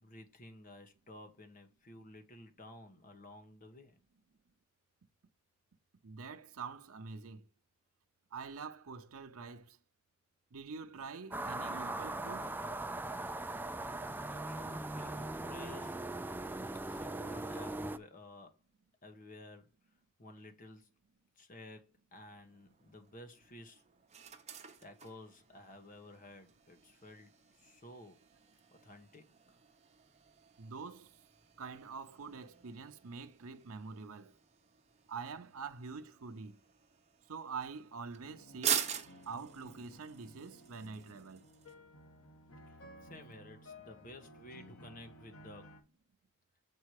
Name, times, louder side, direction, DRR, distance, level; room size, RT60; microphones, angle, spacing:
voice 1, 0.0-4.0 14.2-16.0 16.8-18.6 19.0-19.7 20.2-20.9 21.4-23.8 24.8-28.2 28.8-29.6 42.7-45.7, left 1 dB, 40° left, 1.3 m, -53 dB
voice 2, 6.0-7.5 8.3-9.8 10.5-12.6 30.6-31.1 31.6-34.3 35.1-36.6 37.3-38.9 39.3-41.5, right 5 dB, 80° right, 0.7 m, -45 dB
sound 1, 11.3-18.0, right 2 dB, 10° right, 0.3 m, -40 dB
sound 2, 22.2-41.7, right 8 dB, 30° right, 1.0 m, -45 dB
sound 3, 38.2-45.8, left 1 dB, 80° left, 1.4 m, -56 dB
7.4 x 4.7 x 4.8 m
head